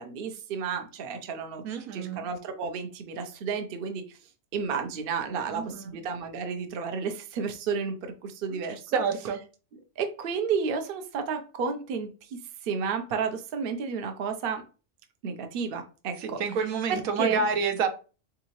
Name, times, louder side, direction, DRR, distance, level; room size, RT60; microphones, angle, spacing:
voice 1, 0.0-1.6 1.9-4.2 4.5-9.0 10.0-14.6 15.2-16.4 16.9-17.4, right 5 dB, 50° right, 6 dB, 0.8 m, -32 dB
voice 2, 1.6-2.3 5.5-6.0 8.9-9.4 16.2-17.9, right 5 dB, 90° right, 7 dB, 1.1 m, -28 dB
3.9 x 3.6 x 3.0 m, 0.34 s
omnidirectional pair, 1.4 m